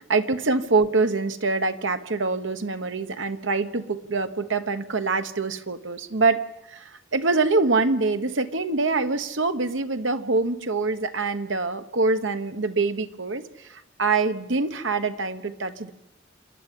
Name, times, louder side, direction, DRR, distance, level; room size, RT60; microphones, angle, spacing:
voice 1, 0.0-6.4 6.7-15.9, right 3 dB, 75° right, 9 dB, 1.2 m, -25 dB
27.5 x 11.0 x 9.2 m, 0.92 s
head